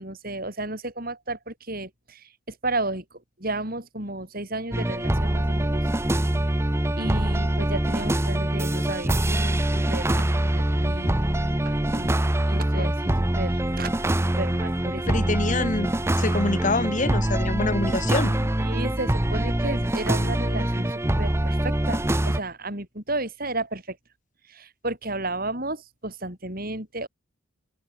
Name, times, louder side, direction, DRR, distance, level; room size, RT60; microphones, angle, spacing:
voice 1, 0.0-5.8 6.9-13.9 14.4-15.1 18.6-24.0 24.5-27.1, right 2 dB, 45° right, 6.7 m, -33 dB
sound 1, 4.7-22.4, right 1 dB, 10° right, 0.7 m, -24 dB
voice 2, 15.1-15.9 16.2-18.5, left 2 dB, 35° left, 1.4 m, -26 dB
head